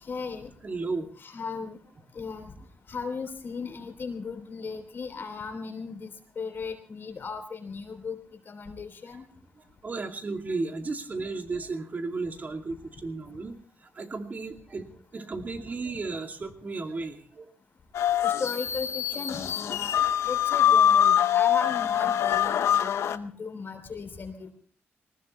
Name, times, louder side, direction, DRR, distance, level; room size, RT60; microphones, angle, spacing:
voice 1, 0.0-0.5 1.2-1.8 2.1-2.5 2.9-6.1 6.3-8.2 8.5-9.2 18.2-19.9 20.2-24.5, left 5 dB, 50° left, 6 dB, 3.2 m, -36 dB
voice 2, 0.6-1.1 9.8-13.5 13.9-17.5, right 3 dB, 40° right, 5 dB, 2.5 m, -34 dB
sound 1, 17.9-23.2, left 10 dB, 85° left, 0.8 m, -24 dB
20.0 x 19.5 x 3.2 m, 0.42 s
cardioid pair, 90°, 5 cm